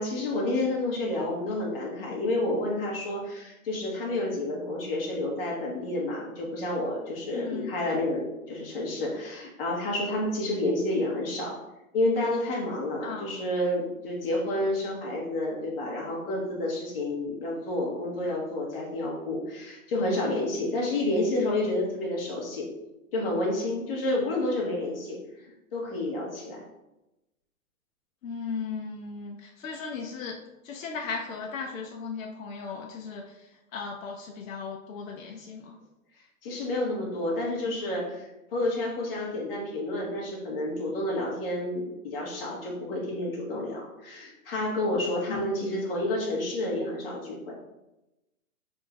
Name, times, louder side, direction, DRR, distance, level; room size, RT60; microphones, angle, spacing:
voice 1, 0.0-11.5 11.9-22.7 23.1-26.6 36.4-47.5, left 1 dB, 45° left, -3 dB, 1.3 m, -30 dB
voice 2, 7.3-7.7 13.0-13.3 28.2-30.4 30.6-35.8 45.3-45.8, left 5 dB, 70° left, 1 dB, 0.7 m, -37 dB
3.6 x 2.6 x 4.6 m, 0.97 s
hypercardioid pair, 175°, 41 cm